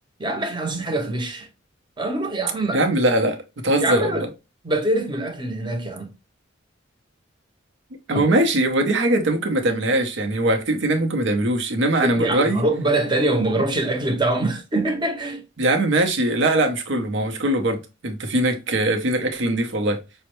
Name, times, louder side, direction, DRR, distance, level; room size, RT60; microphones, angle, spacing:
voice 1, 0.2-1.5 2.0-2.8 3.8-4.3 4.6-6.1 8.1-8.2 12.0-15.4, right 2 dB, 25° right, 0.8 m, -24 dB
voice 2, 2.7-3.4 3.6-4.3 8.1-12.7 13.6-13.7 15.6-20.0, right 1 dB, 65° right, 0.7 m, -21 dB
5.4 x 2.1 x 3.0 m
head